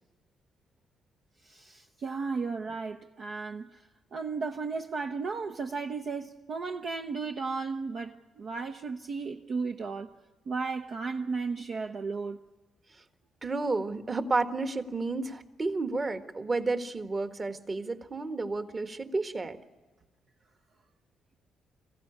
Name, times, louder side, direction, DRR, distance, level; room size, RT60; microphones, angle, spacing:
voice 1, 1.4-10.1 10.5-12.4, right 4 dB, 55° right, 0.9 m, -35 dB
voice 2, 13.4-19.6, right 3 dB, 35° right, 1.6 m, -31 dB
23.5 x 15.5 x 9.8 m
hypercardioid pair, 45°, 0 cm